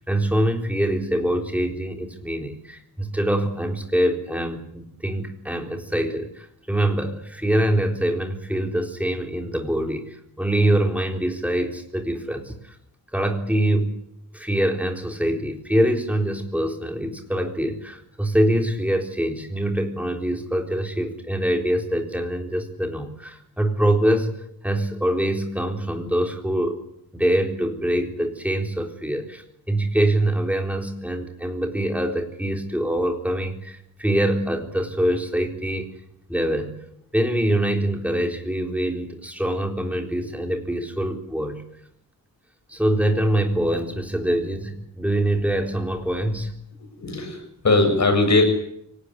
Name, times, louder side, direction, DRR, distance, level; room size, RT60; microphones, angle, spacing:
voice 1, 0.0-12.8 13.1-13.9 14.3-24.4 24.6-26.8 27.1-35.9 36.3-36.8 37.1-41.6 42.7-46.5, right 1 dB, 5° right, 3 dB, 4.0 m, -24 dB
voice 2, 47.0-48.4, left 2 dB, 50° left, 5 dB, 7.5 m, -19 dB
25.0 x 18.5 x 10.0 m, 0.74 s
wide cardioid pair, 140°, 35 cm